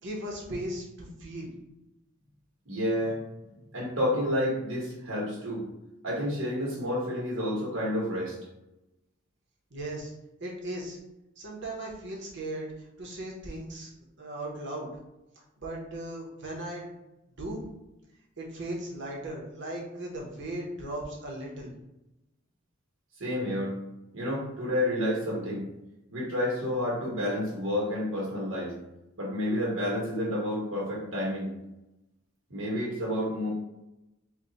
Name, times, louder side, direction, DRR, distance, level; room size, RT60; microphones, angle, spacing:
voice 1, 0.0-1.5 9.7-10.1 10.4-11.0 11.4-13.9 14.2-14.9 15.6-16.9 17.4-17.6 18.4-21.7, right 1 dB, 60° right, -3 dB, 1.0 m, -37 dB
voice 2, 2.7-3.2 3.7-5.7 6.0-8.3 23.2-23.8 24.1-25.6 26.1-28.7 29.2-31.5 32.5-33.5, left 1 dB, 80° right, -5 dB, 1.3 m, -30 dB
3.5 x 2.4 x 3.9 m, 0.94 s
head